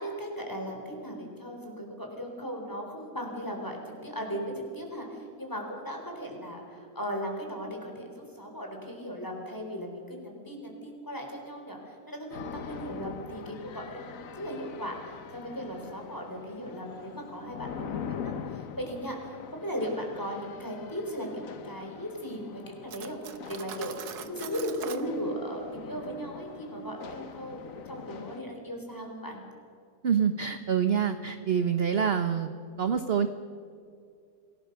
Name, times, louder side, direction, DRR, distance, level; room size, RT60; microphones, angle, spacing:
voice 1, 0.0-15.0 15.3-23.2 23.5-27.6 27.9-29.4, equal, 10° left, 1 dB, 4.1 m, -37 dB
sound 1, 12.3-28.4, left 7 dB, 60° left, 1.3 m, -43 dB
Cutlery silverware, 22.9-25.1, right 9 dB, 75° right, 1.5 m, -42 dB
voice 2, 30.0-32.5 32.8-33.3, right 7 dB, 45° right, 9 dB, 1.0 m, -26 dB
26.5 x 17.0 x 6.8 m, 2.3 s
omnidirectional pair, 1.7 m